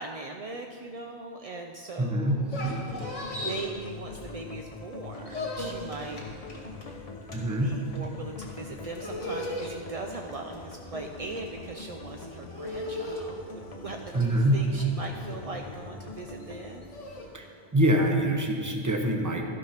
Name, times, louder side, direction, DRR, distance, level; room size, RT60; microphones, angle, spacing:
voice 1, 0.0-2.6 3.4-6.3 7.6-16.9, right 3 dB, 50° right, 3 dB, 0.4 m, -40 dB
voice 2, 2.0-2.4 7.3-7.7 14.1-14.6 17.3-17.4 17.7-19.5, right 1 dB, 15° right, 3 dB, 0.8 m, -24 dB
sound 1, 2.3-4.6 4.9-17.3, left 1 dB, 90° left, 2.1 m, -38 dB
sound 2, 3.0-18.1, left 3 dB, 35° left, 0.8 m, -44 dB
12.5 x 6.2 x 5.7 m, 2.1 s
omnidirectional pair, 1.2 m